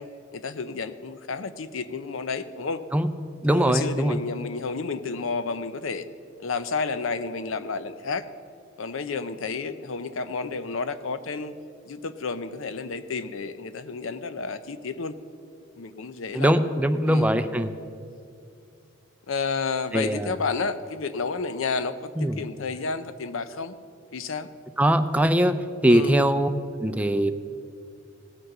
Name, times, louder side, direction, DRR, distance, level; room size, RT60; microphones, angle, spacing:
voice 1, 0.0-2.8 3.5-6.1 6.4-8.3 8.8-11.5 11.9-15.1 15.8-16.6 17.1-17.3 19.3-23.7 24.1-24.5 25.8-26.2, left 4 dB, 75° left, 13 dB, 0.6 m, -31 dB
voice 2, 3.4-4.2 16.3-17.7 19.9-20.3 22.2-22.4 24.8-25.6 25.8-26.5 26.8-27.3, right 1 dB, 5° right, 9 dB, 0.5 m, -21 dB
18.0 x 6.5 x 5.9 m, 2.5 s
head